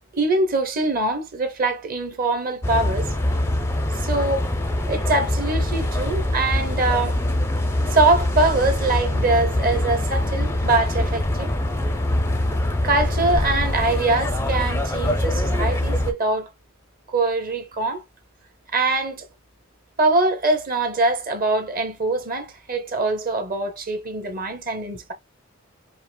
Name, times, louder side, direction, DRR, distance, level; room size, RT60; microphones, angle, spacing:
voice 1, 0.1-3.2 3.9-4.5 4.9-7.2 7.9-11.5 12.8-16.5 17.1-18.0 18.7-19.2 20.0-25.1, right 2 dB, 40° right, 0.9 m, -23 dB
sound 1, 2.6-16.1, left 1 dB, 10° left, 0.4 m, -23 dB
5.5 x 2.0 x 2.2 m
head